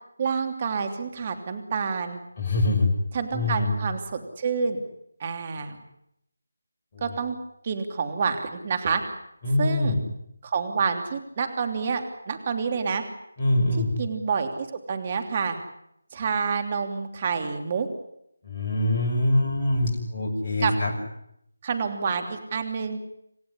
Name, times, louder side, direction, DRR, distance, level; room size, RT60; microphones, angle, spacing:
voice 1, 0.2-2.2 3.1-4.8 5.2-5.8 7.0-7.4 7.6-9.0 9.6-9.9 10.4-13.0 13.7-15.6 16.1-17.9 20.6-20.7 21.6-23.0, right 5 dB, 30° right, 7 dB, 3.0 m, -28 dB
voice 2, 2.4-2.9 3.3-3.7 6.9-7.0 9.4-10.0 13.4-13.9 18.4-20.9, left 1 dB, 30° left, 0 dB, 6.6 m, -24 dB
28.0 x 16.0 x 9.9 m, 0.76 s
figure-of-eight pair, 165°, 0 cm